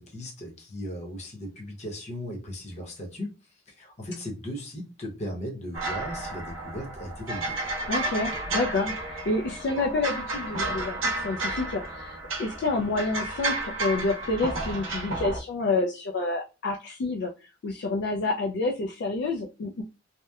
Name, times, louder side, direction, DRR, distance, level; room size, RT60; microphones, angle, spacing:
voice 1, 0.0-3.3 3.7-7.5, equal, 35° left, 0.8 m, -37 dB
sound 1, 5.7-15.4, right 2 dB, 90° right, 0.7 m, -32 dB
voice 2, 7.9-17.3 17.6-19.8, left 3 dB, 60° left, 0.3 m, -28 dB
2.8 x 2.0 x 2.2 m
head